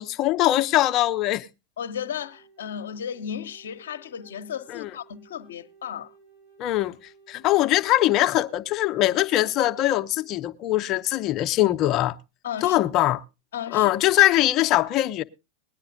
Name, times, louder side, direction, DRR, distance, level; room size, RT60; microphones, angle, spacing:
voice 1, 0.0-1.5 4.7-4.9 6.6-7.0 7.3-12.2 12.6-13.2 13.7-15.2, left 15 dB, 45° left, 0.7 m, -22 dB
voice 2, 1.8-6.1 12.4-13.1 13.5-13.9, left 8 dB, 70° left, 0.8 m, -35 dB
Wind instrument woodwind instrument, 1.9-10.6, right 5 dB, 85° right, 6.8 m, -56 dB
20.5 x 9.8 x 2.5 m
hypercardioid pair, 95°, 0 cm